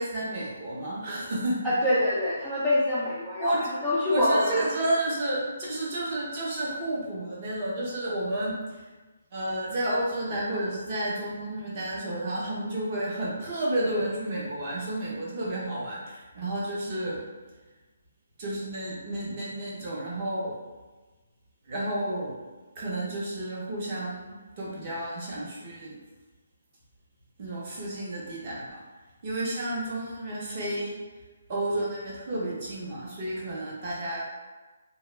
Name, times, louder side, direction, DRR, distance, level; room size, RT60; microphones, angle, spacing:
voice 1, 0.0-1.6 3.4-3.6 4.1-8.8 9.3-17.2 18.4-20.5 21.6-22.3 22.7-26.0 27.4-28.8 29.2-31.0 31.5-34.2, right 1 dB, 25° right, -6 dB, 0.7 m, -31 dB
voice 2, 1.6-4.7, left 1 dB, ahead, -14 dB, 0.3 m, -25 dB
2.8 x 2.2 x 3.1 m, 1.3 s
hypercardioid pair, 175°, 0 cm